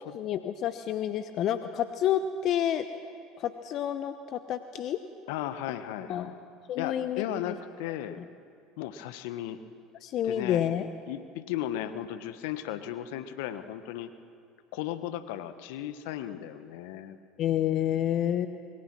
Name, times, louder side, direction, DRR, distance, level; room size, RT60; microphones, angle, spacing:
voice 1, 0.1-2.8 3.4-5.0 6.1-6.3 6.7-7.5 8.1-8.2 10.0-10.9 17.4-18.5, left 10 dB, 50° left, 10 dB, 0.9 m, -29 dB
voice 2, 5.3-6.4 6.8-8.2 8.8-9.6 10.2-10.7 11.1-14.1 14.7-17.2, left 11 dB, 70° left, 11 dB, 1.2 m, -35 dB
25.0 x 22.0 x 6.1 m, 2.3 s
hypercardioid pair, 75°, 0 cm